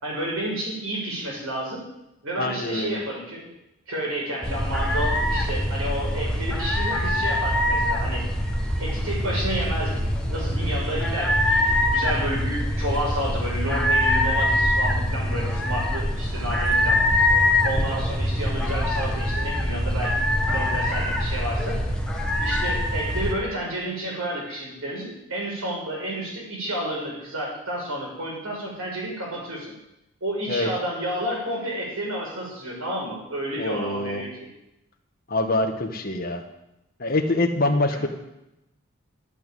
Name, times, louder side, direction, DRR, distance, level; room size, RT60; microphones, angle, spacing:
voice 1, 0.0-1.8 2.2-3.5 3.9-8.2 8.8-17.0 17.6-21.8 22.4-29.7 30.2-34.5 37.9-38.1, right 1 dB, 75° right, -2 dB, 6.4 m, -31 dB
voice 2, 2.4-3.0 30.5-30.7 33.6-34.2 35.3-36.4 37.0-38.1, left 2 dB, 40° left, 3 dB, 1.6 m, -25 dB
sound 1, 4.4-23.3, left 1 dB, 5° left, 1.6 m, -24 dB
12.0 x 8.3 x 9.1 m, 0.89 s
head